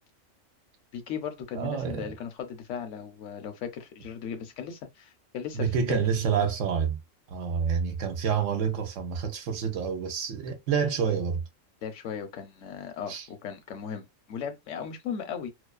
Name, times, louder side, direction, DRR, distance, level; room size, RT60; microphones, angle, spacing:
voice 1, 0.9-6.0 11.8-15.5, left 7 dB, 70° left, 0.9 m, -37 dB
voice 2, 1.5-2.1 5.5-7.0 7.3-11.4 13.1-13.3, right 6 dB, 75° right, 1.0 m, -28 dB
2.4 x 2.3 x 2.3 m
omnidirectional pair, 1.4 m